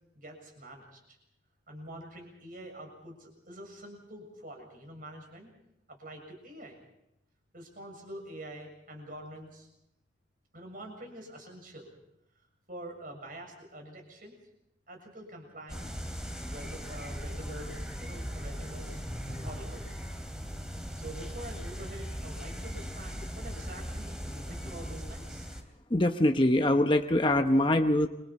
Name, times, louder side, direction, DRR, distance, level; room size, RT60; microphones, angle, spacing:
voice 1, 0.2-1.2 1.7-5.5 5.9-6.8 7.5-9.7 10.5-12.0 12.7-14.4 14.9-16.0 16.5-20.0 21.0-25.5, right 1 dB, 45° right, 2 dB, 7.1 m, -46 dB
sound 1, 15.7-25.6, equal, 5° right, 2.9 m, -39 dB
voice 2, 25.9-28.1, left 1 dB, 25° left, 5 dB, 0.9 m, -23 dB
29.5 x 25.0 x 4.3 m, 0.83 s
head